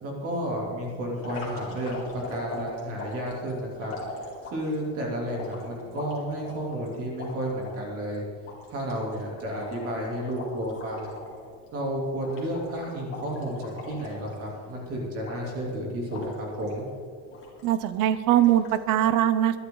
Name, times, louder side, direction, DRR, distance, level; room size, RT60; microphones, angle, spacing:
voice 1, 0.0-3.9 4.4-8.2 8.7-11.2 11.7-16.9, equal, 35° right, -2 dB, 3.3 m, -32 dB
sound 1, 1.2-4.7 5.3-7.8 8.1-8.2 8.5-11.4 11.7-11.9 12.2-14.7 15.2-15.7 16.1-16.8 17.3-17.9 18.3-18.8, left 2 dB, 35° left, 4.0 m, -40 dB
voice 2, 17.6-19.6, right 12 dB, 50° right, 13 dB, 0.9 m, -22 dB
23.0 x 11.5 x 4.0 m, 2.1 s
cardioid pair, 180°, 40 cm